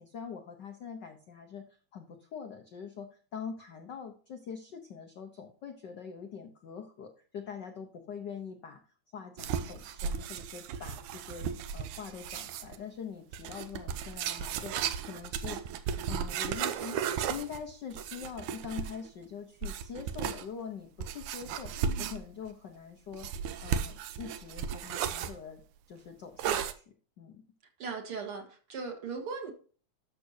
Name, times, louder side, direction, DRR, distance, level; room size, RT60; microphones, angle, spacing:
voice 1, 0.0-8.8 9.1-15.6 16.1-17.0 17.3-23.3 23.6-25.6 25.9-27.4, left 6 dB, 80° left, 0.9 m, -44 dB
sound 1, 9.4-12.8 13.3-19.1 19.6-20.4 21.0-22.5 23.1-25.4 26.4-26.7, right 8 dB, 90° right, 2.1 m, -35 dB
voice 2, 21.8-22.1 27.8-28.4 28.7-29.5, right 5 dB, 55° right, 2.2 m, -38 dB
13.0 x 6.4 x 2.8 m
omnidirectional pair, 3.4 m